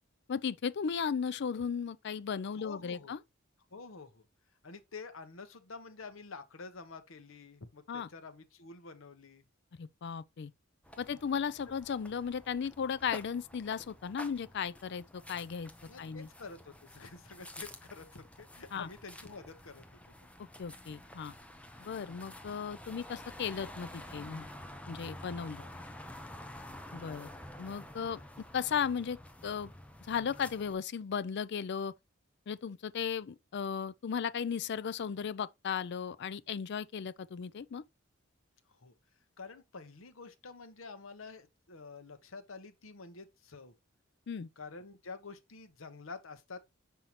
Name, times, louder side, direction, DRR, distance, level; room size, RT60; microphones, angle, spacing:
voice 1, 0.3-3.2 7.9-8.1 9.8-10.5 11.0-15.7 16.0-16.3 18.7-18.9 20.6-21.4 21.8-24.5 24.9-25.6 26.9-27.3 27.6-28.2 28.5-29.2 29.4-29.7 30.1-31.9 32.5-37.8 44.3-44.5, left 7 dB, 55° left, 0.4 m, -36 dB
voice 2, 2.6-3.1 3.7-4.2 4.6-9.4 15.9-19.8 25.6-25.7 38.7-38.9 39.4-43.7 44.6-46.6, left 4 dB, 75° left, 1.0 m, -48 dB
sound 1, 10.8-30.7, left 1 dB, 5° left, 0.7 m, -50 dB
5.7 x 5.5 x 2.9 m
head